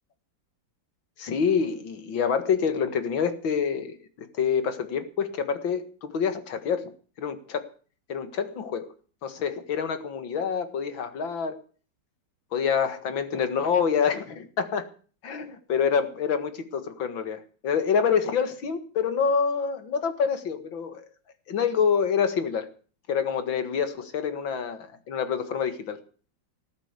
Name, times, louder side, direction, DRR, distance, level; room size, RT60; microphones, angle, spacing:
voice 1, 1.2-6.9 7.2-7.7 8.1-8.9 9.2-11.6 12.5-14.9 15.2-21.0 21.5-22.7 23.1-26.0, left 6 dB, 80° left, 10 dB, 2.5 m, -27 dB
19.5 x 8.2 x 8.2 m, 0.41 s
omnidirectional pair, 2.1 m